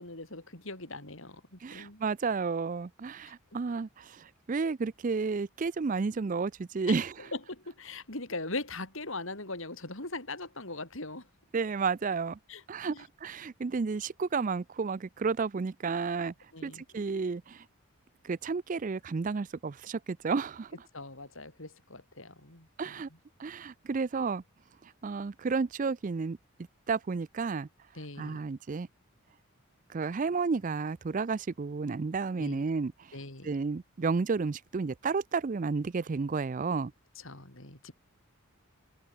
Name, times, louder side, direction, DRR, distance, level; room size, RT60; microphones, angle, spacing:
voice 1, 0.0-2.0 6.9-7.0 7.3-11.3 12.5-12.6 12.9-13.0 16.5-17.0 20.9-22.7 27.9-28.4 32.4-32.7 33.1-33.5 37.2-37.9, left 2 dB, 60° left, 4.4 m, -40 dB
voice 2, 1.6-7.1 11.5-12.4 12.7-16.3 16.6-17.6 18.2-20.7 22.8-23.1 23.4-24.4 24.8-26.4 26.9-27.7 28.2-28.9 29.9-33.2 33.4-36.9, right 4 dB, 35° right, 0.4 m, -32 dB
open air
head